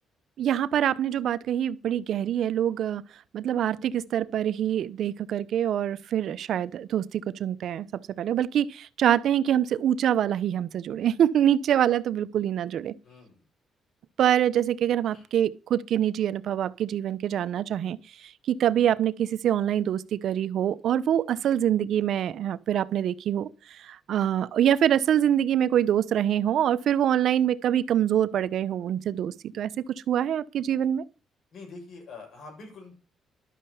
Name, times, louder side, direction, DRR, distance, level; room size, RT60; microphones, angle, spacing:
voice 1, 0.4-3.0 3.3-7.9 8.2-12.9 14.2-31.0, right 10 dB, 70° right, 0.7 m, -25 dB
voice 2, 13.0-13.4 15.1-15.2 31.5-32.9, left 3 dB, 65° left, 7.2 m, -45 dB
12.0 x 6.6 x 7.0 m
cardioid pair, 90°, 0 cm